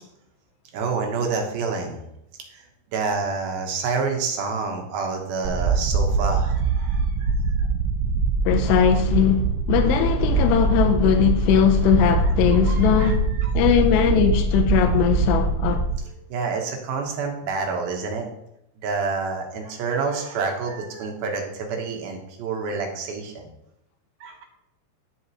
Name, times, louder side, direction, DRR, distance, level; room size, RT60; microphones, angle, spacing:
voice 1, 0.7-2.0 2.5-7.7 12.5-13.5 16.1-18.3 18.8-23.5 24.2-24.4, right 4 dB, 70° right, 2.6 m, -28 dB
sound 1, 5.5-16.0, right 3 dB, 85° right, 3.0 m, -22 dB
voice 2, 8.5-13.2 13.5-15.8, left 8 dB, 80° left, 2.7 m, -20 dB
11.0 x 7.2 x 3.0 m
omnidirectional pair, 5.2 m